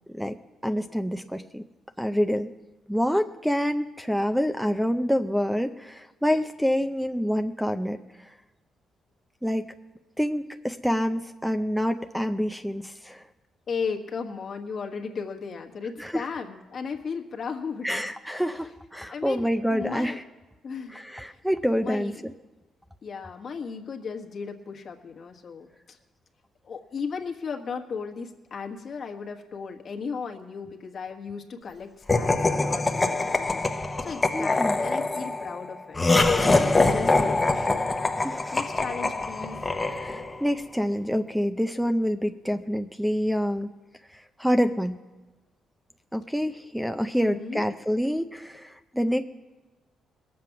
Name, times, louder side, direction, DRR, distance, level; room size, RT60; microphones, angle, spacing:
voice 1, 0.6-1.6 2.0-2.5 2.9-8.3 9.4-9.7 10.2-13.2 16.0-16.3 17.8-20.2 20.9-22.3 34.3-34.8 38.2-38.6 39.8-43.7 44.1-45.0 46.1-49.2, equal, ahead, 8 dB, 0.5 m, -27 dB
voice 2, 13.7-18.0 18.5-18.7 19.1-20.2 20.6-21.4 21.8-22.2 23.0-26.0 26.6-36.0 36.4-37.8 38.5-39.8 47.2-47.7, left 5 dB, 50° left, 2 dB, 1.5 m, -36 dB
Laughter, 32.1-40.5, left 2 dB, 20° left, 0.9 m, -24 dB
20.0 x 7.8 x 5.9 m, 1.2 s
cardioid pair, 90°, 0 cm